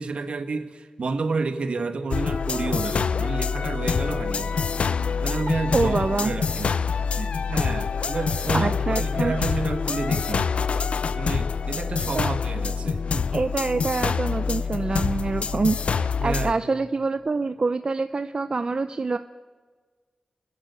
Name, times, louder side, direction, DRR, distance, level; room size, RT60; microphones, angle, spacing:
voice 1, 0.0-4.7 5.2-6.9 7.2-10.6 11.1-13.3 16.2-16.8, right 4 dB, 65° right, 8 dB, 1.7 m, -30 dB
sound 1, 2.1-16.5, left 5 dB, 70° left, 0.6 m, -26 dB
voice 2, 5.7-6.3 8.5-9.3 12.1-12.3 13.3-19.2, right 3 dB, 45° right, 10 dB, 0.6 m, -26 dB
29.5 x 11.0 x 8.5 m, 1.5 s
wide cardioid pair, 95°, 2 cm